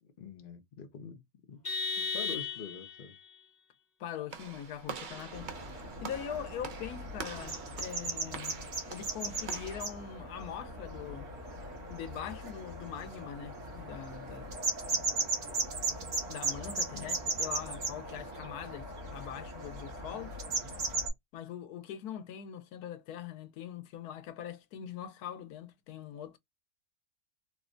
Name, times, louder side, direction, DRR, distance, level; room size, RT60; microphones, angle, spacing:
voice 1, 0.0-1.2 1.5-3.2 16.9-17.1, left 6 dB, 50° left, 0.6 m, -46 dB
Vehicle horn car horn honking, 1.6-3.0, left 4 dB, 35° left, 1.0 m, -34 dB
voice 2, 4.0-5.5 6.0-8.6 8.8-11.3 11.9-15.0 16.3-20.3 21.3-26.4, left 9 dB, 90° left, 1.1 m, -42 dB
Walk footsteps / Slam, 4.3-9.9, right 5 dB, 55° right, 0.5 m, -45 dB
sound 1, 5.3-21.1, right 2 dB, 75° right, 1.8 m, -37 dB
4.3 x 2.1 x 2.5 m
omnidirectional pair, 1.6 m